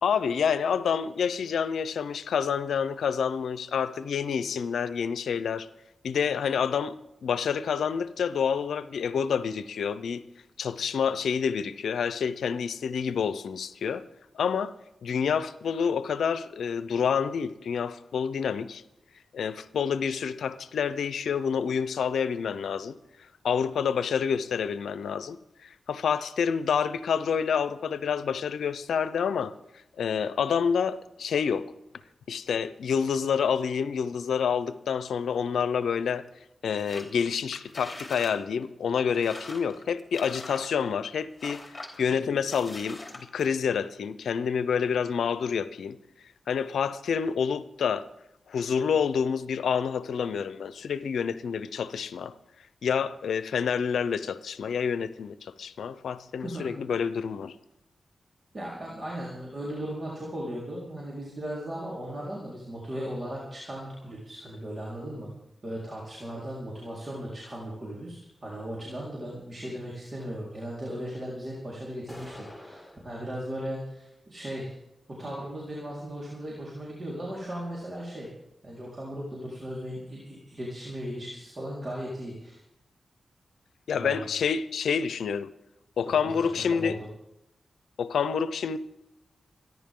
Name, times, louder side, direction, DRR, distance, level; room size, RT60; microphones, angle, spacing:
voice 1, 0.0-5.7 6.0-10.2 10.6-14.0 14.3-14.7 15.0-18.8 19.3-23.0 23.4-29.5 30.0-31.7 32.3-36.2 36.6-46.0 46.5-48.1 48.5-52.3 52.8-57.6 83.9-85.5 86.0-87.0 88.0-88.8, left 7 dB, 85° left, 0.6 m, -28 dB
sound 1, 36.8-37.1 37.4-38.4 38.6-38.7 39.1-41.1 41.4-42.0 42.4-43.5, left 2 dB, 25° left, 3.8 m, -43 dB
voice 2, 58.5-65.3 65.6-74.7 75.1-78.3 78.6-82.6 83.9-84.3 86.2-86.9, equal, 45° right, 4.3 m, -37 dB
sound 2, 72.1-73.1, left 1 dB, 5° left, 5.1 m, -45 dB
27.5 x 11.0 x 3.8 m
cardioid pair, 45°, 0 cm